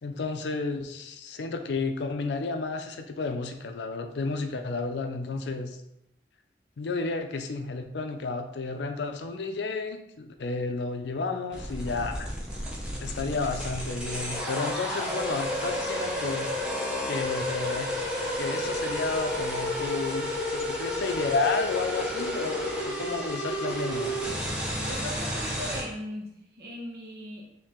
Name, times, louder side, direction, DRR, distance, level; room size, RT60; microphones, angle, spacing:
voice 1, 0.0-5.8 6.8-12.3 13.0-16.5 17.1-18.0 18.4-24.1, left 3 dB, 75° left, 6 dB, 0.5 m, -32 dB
sound 1, 11.5-25.8, left 1 dB, 5° right, 0.7 m, -31 dB
voice 2, 24.8-27.4, left 1 dB, 60° right, -1 dB, 1.1 m, -38 dB
4.4 x 2.8 x 3.6 m, 0.82 s
head